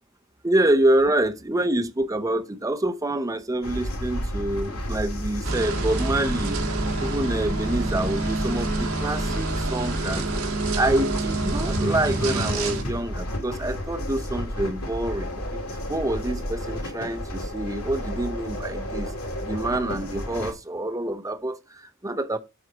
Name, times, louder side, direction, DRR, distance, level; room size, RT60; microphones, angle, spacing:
voice 1, 0.4-6.6 7.0-15.6 15.9-19.1 19.4-22.4, right 1 dB, 15° right, 0.7 m, -26 dB
sound 1, 3.6-20.5, left 1 dB, 85° left, 2.6 m, -31 dB
sound 2, 5.4-12.8, right 3 dB, 80° right, 1.6 m, -28 dB
7.6 x 4.2 x 6.1 m
head